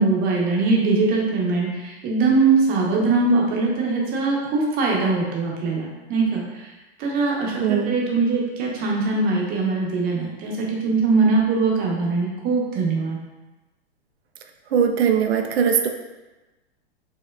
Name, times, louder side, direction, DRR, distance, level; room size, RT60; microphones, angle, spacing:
voice 1, 0.0-6.7 7.0-13.2, right 3 dB, 30° right, -2 dB, 0.7 m, -21 dB
voice 2, 7.6-8.0 14.7-15.9, right 7 dB, 75° right, 5 dB, 0.5 m, -20 dB
4.5 x 2.1 x 2.2 m, 1.1 s
hypercardioid pair, 115°, 32 cm